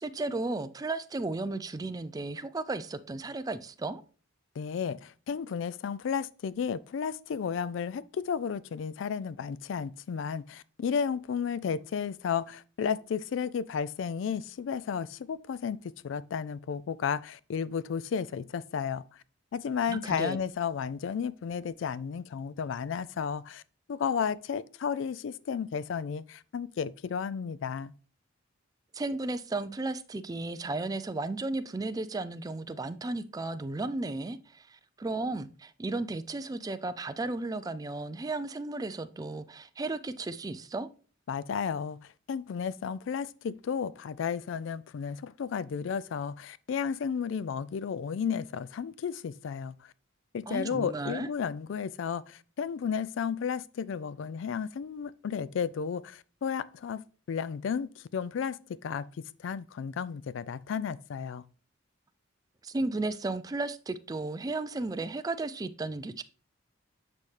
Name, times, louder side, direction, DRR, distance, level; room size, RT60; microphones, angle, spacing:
voice 1, 0.0-4.0 19.9-20.4 28.9-40.9 50.5-51.3 62.6-66.2, right 2 dB, 20° right, 0.3 m, -34 dB
voice 2, 4.6-19.0 19.5-23.6 23.9-27.9 41.3-49.9 50.3-59.1 59.4-61.4, left 7 dB, 65° left, 0.3 m, -33 dB
8.2 x 4.2 x 3.2 m
head